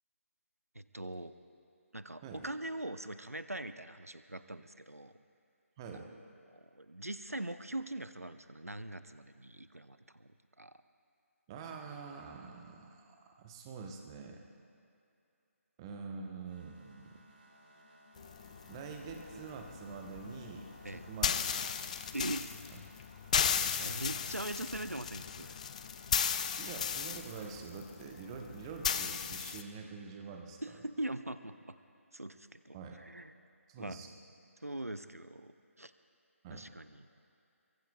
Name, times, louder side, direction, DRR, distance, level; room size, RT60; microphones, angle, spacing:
voice 1, 0.7-1.3 1.9-5.1 5.9-6.1 6.5-10.3 10.6-10.7 20.8-21.1 22.1-22.5 23.5-25.5 30.6-31.8 32.1-33.3 33.8-34.0 34.6-35.9 36.5-37.1, right 1 dB, 85° right, 12 dB, 0.7 m, -42 dB
voice 2, 5.8-6.1 11.5-13.0 13.4-14.4 15.8-17.2 18.7-21.5 22.7-22.8 23.8-24.2 26.6-30.8 32.7-33.0 33.7-34.1 36.4-36.7, right 5 dB, 20° right, 3 dB, 1.1 m, -46 dB
sound 1, 16.2-27.3, right 1 dB, 45° right, 3.6 m, -60 dB
sound 2, 18.2-29.6, left 7 dB, 30° left, 0.4 m, -36 dB
23.5 x 23.0 x 2.4 m, 2.6 s
figure-of-eight pair, 145°, 8 cm